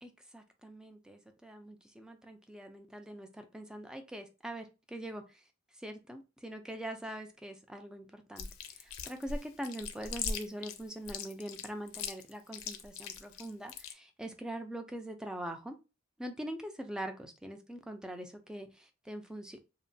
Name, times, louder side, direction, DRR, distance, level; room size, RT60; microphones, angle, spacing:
voice 1, 0.0-5.4 5.8-15.8 16.2-19.6, right 1 dB, 5° right, 5 dB, 0.3 m, -43 dB
Chewing mastication, 8.4-13.9, left 5 dB, 85° left, 0.4 m, -40 dB
2.9 x 2.1 x 2.6 m, 0.28 s
head